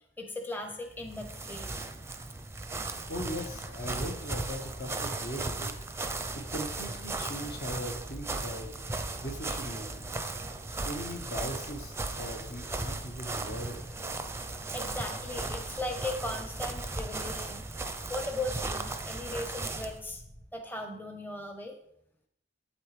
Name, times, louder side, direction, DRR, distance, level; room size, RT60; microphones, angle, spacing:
voice 1, 0.2-1.7 6.2-6.3 14.7-17.6 18.1-20.2 20.5-21.8, left 2 dB, 10° left, 4 dB, 0.8 m, -38 dB
sound 1, 0.9-20.0, right 3 dB, 15° right, 0.6 m, -37 dB
sound 2, 2.5-20.4, equal, 40° left, 2.8 m, -50 dB
voice 2, 2.8-5.7 6.5-8.7 9.2-10.1 10.7-13.8, equal, 55° left, 3 dB, 1.3 m, -39 dB
8.4 x 8.2 x 3.3 m, 0.73 s
head